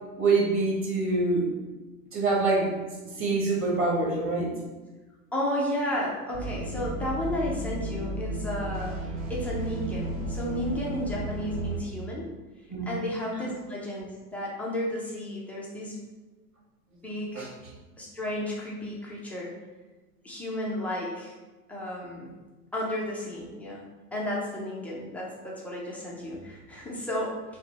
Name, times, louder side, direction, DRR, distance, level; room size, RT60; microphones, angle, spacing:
voice 1, 0.2-1.5 2.1-2.7 3.2-4.5 12.7-12.9 13.3-13.4 17.3-17.5, right 3 dB, 25° right, -3 dB, 1.4 m, -25 dB
voice 2, 5.3-9.0 9.3-12.3 12.9-16.0 16.9-17.5 18.0-19.5 20.2-21.3 21.7-22.3 22.7-23.8 24.1-27.3, left 1 dB, 5° left, -5 dB, 0.3 m, -33 dB
sound 1, 6.3-11.8, right 2 dB, 50° right, 1.2 m, -33 dB
4.2 x 2.6 x 3.9 m, 1.2 s
hypercardioid pair, 100°, 46 cm